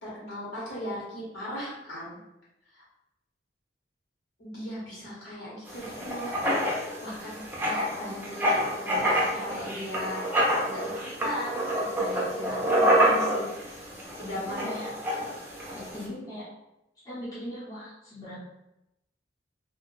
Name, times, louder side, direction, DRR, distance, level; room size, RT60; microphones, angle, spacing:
voice 1, 0.0-2.2 2.7-2.8 4.4-6.3 6.7-12.6 12.9-13.5 14.2-14.7, left 1 dB, 70° left, -7 dB, 1.3 m, -38 dB
Writing, 5.7-16.0, equal, 10° right, 0.6 m, -27 dB
voice 2, 12.8-13.3 14.3-14.9 15.7-16.5 17.0-18.4, left 1 dB, 20° left, -10 dB, 0.8 m, -40 dB
2.5 x 2.3 x 3.8 m, 0.91 s
head